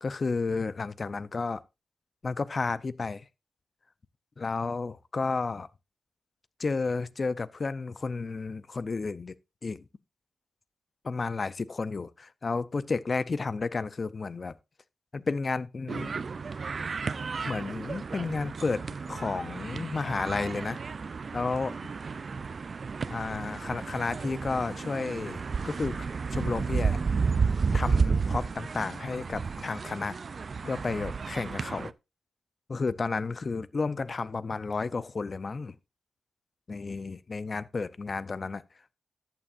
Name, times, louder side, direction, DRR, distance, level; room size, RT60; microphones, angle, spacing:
voice 1, 0.0-1.6 2.2-3.2 4.4-5.7 6.6-9.3 9.6-9.8 11.0-14.5 15.1-16.2 17.5-20.8 21.3-21.8 23.1-26.1 26.3-27.0 27.7-30.2 30.6-31.9 32.7-35.7 36.7-38.6, left 4 dB, 45° left, 0.6 m, -32 dB
sound 1, 15.9-31.9, right 5 dB, 55° right, 0.4 m, -32 dB
14.0 x 8.8 x 2.5 m
cardioid pair, 85°, 0 cm